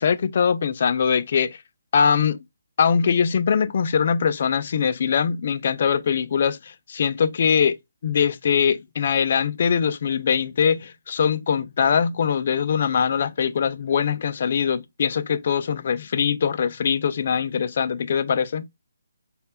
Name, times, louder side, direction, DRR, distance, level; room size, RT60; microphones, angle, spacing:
voice 1, 0.0-1.6 1.9-2.4 2.8-7.8 8.0-18.7, left 7 dB, 40° left, 0.3 m, -22 dB
4.3 x 2.1 x 3.2 m
hypercardioid pair, 170°, 0 cm